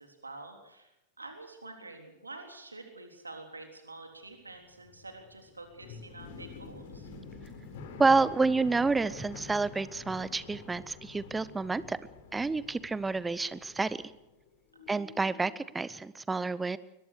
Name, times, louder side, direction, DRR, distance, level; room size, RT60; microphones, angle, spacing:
voice 1, 0.0-7.1 14.7-15.0, right 2 dB, 80° right, 4 dB, 3.6 m, -48 dB
sound 1, 4.4-14.5 14.7-15.6, left 4 dB, 50° left, 3.8 m, -48 dB
voice 2, 8.0-12.0 12.3-14.0 14.9-16.8, right 3 dB, 10° right, 18 dB, 0.9 m, -29 dB
22.5 x 20.5 x 6.6 m, 0.91 s
figure-of-eight pair, 90°, 0 cm